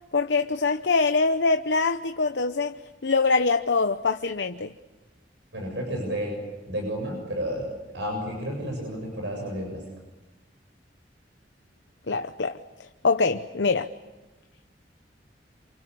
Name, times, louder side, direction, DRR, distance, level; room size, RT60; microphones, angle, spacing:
voice 1, 0.1-2.7 3.0-4.7 12.1-12.6 13.0-13.9, left 4 dB, 75° left, 8 dB, 0.9 m, -24 dB
voice 2, 5.5-6.4 6.7-7.7 7.9-9.8, equal, 80° right, 1 dB, 7.7 m, -31 dB
29.0 x 27.5 x 7.1 m, 1.2 s
head